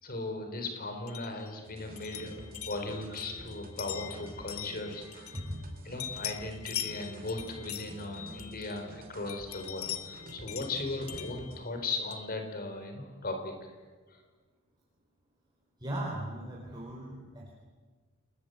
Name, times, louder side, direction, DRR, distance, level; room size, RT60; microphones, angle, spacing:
voice 1, 0.0-5.4 5.8-13.5 14.1-14.2, left 2 dB, 40° left, 5 dB, 4.2 m, -38 dB
sound 1, 1.1-5.7 6.0-8.9 9.3-12.3, left 11 dB, 70° left, 1.3 m, -42 dB
sound 2, 1.6-11.6, right 1 dB, 40° right, 3.5 m, -49 dB
voice 2, 15.8-17.5, right 1 dB, 20° right, -3 dB, 4.3 m, -38 dB
29.0 x 20.0 x 8.1 m, 1.4 s
head